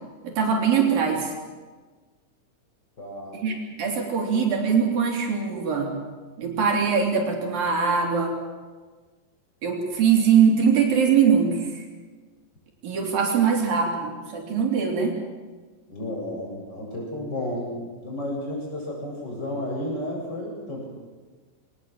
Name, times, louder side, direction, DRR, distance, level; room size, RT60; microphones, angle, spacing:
voice 1, 0.2-1.3 3.4-6.0 6.4-8.4 9.6-11.8 12.8-15.2, right 6 dB, 70° right, 1 dB, 5.1 m, -22 dB
voice 2, 3.0-3.4 15.9-20.9, left 1 dB, 25° left, -2 dB, 8.1 m, -32 dB
23.0 x 20.0 x 7.5 m, 1.4 s
omnidirectional pair, 4.2 m